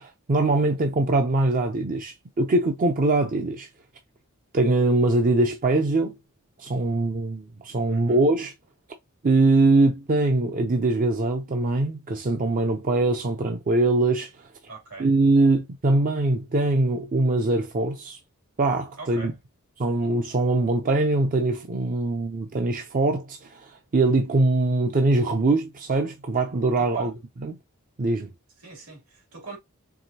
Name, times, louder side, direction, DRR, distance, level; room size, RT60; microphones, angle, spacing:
voice 1, 0.0-3.7 4.5-6.2 6.6-8.5 9.2-14.3 15.0-18.2 18.6-19.3 19.8-27.1 27.4-27.5 28.0-28.3, right 2 dB, 40° right, 0.5 m, -22 dB
voice 2, 7.9-8.2 14.7-15.1 19.0-19.4 26.8-27.2 28.6-29.6, right 3 dB, 80° right, 2.6 m, -41 dB
4.7 x 3.3 x 2.7 m
head